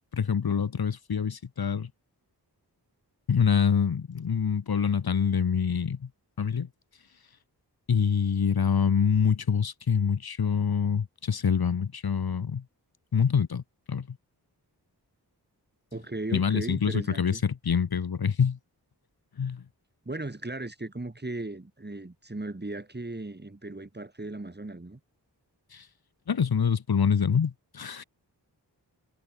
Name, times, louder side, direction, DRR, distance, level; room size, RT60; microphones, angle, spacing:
voice 1, 0.1-1.9 3.3-6.1 6.4-6.7 7.9-12.6 13.1-13.6 13.9-14.1 16.3-18.6 19.4-19.6 25.7-25.9 26.3-28.0, left 7 dB, 60° left, 1.0 m, -25 dB
voice 2, 15.9-17.4 20.1-25.0, right 2 dB, 25° right, 2.4 m, -37 dB
wide cardioid pair, 50°, 41 cm